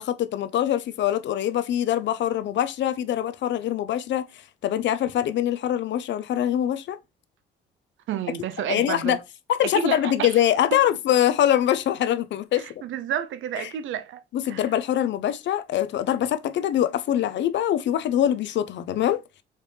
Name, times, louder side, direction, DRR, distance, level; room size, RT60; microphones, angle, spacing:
voice 1, 0.0-4.2 4.6-7.0 8.7-9.2 9.5-12.7 13.6-13.7 14.3-19.2, left 11 dB, 65° left, 0.5 m, -23 dB
voice 2, 8.1-9.2 9.7-10.4 12.5-14.7, right 10 dB, 75° right, 0.6 m, -31 dB
4.2 x 3.3 x 3.2 m
cardioid pair, 90°, 20 cm